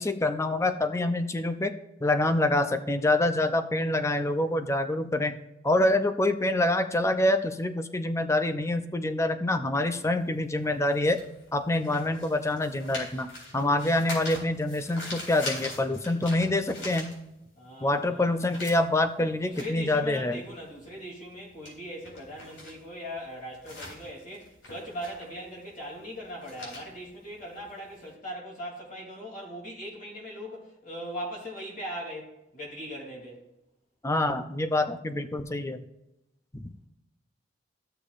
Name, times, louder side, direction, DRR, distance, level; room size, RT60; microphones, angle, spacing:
voice 1, 0.0-1.7 2.0-11.2 11.5-17.1 17.8-20.4 34.0-35.8 36.5-36.7, left 1 dB, 15° left, 9 dB, 0.5 m, -26 dB
sound 1, 9.9-17.6 18.0-28.0, left 2 dB, 90° left, 3.7 m, -43 dB
voice 2, 17.6-18.3 19.2-33.4, equal, 45° left, -4 dB, 2.9 m, -40 dB
14.0 x 6.7 x 2.5 m, 0.90 s
head